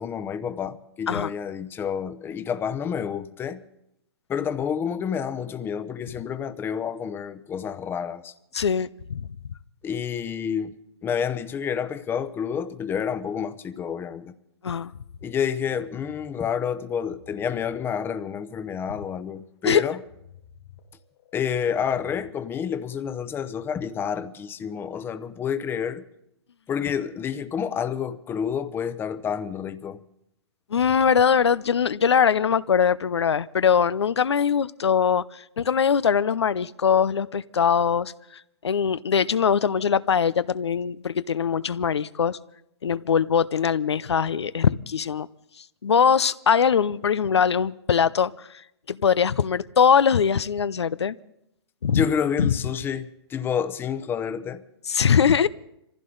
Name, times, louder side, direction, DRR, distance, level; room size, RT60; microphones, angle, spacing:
voice 1, 0.0-3.6 4.3-8.3 9.8-10.7 11.0-14.3 15.2-20.0 21.3-26.0 26.7-30.0 51.9-54.6, left 7 dB, 15° left, 0.8 m, -29 dB
voice 2, 8.5-9.3 14.6-14.9 19.6-20.0 30.7-42.4 42.8-45.3 45.6-51.2 51.8-52.1 52.4-52.5 54.9-55.5, left 7 dB, 85° left, 0.6 m, -22 dB
sound 1, 15.2-23.8, left 8 dB, 55° left, 2.4 m, -54 dB
24.0 x 15.5 x 3.9 m
hypercardioid pair, 130°, 14 cm